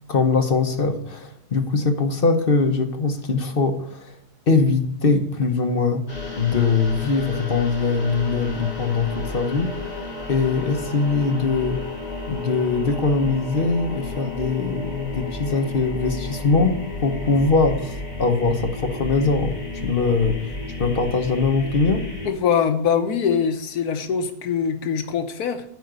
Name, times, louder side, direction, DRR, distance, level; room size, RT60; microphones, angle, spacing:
voice 1, 0.1-4.2 4.5-6.0 6.4-10.0 10.3-11.8 12.3-19.6 19.8-20.5 20.8-22.1, left 4 dB, 40° left, 6 dB, 1.0 m, -22 dB
sound 1, 6.1-22.3, left 3 dB, 25° left, 1.9 m, -32 dB
voice 2, 22.2-25.6, left 7 dB, 75° left, 8 dB, 1.3 m, -23 dB
9.6 x 5.0 x 8.0 m, 0.70 s
omnidirectional pair, 1.7 m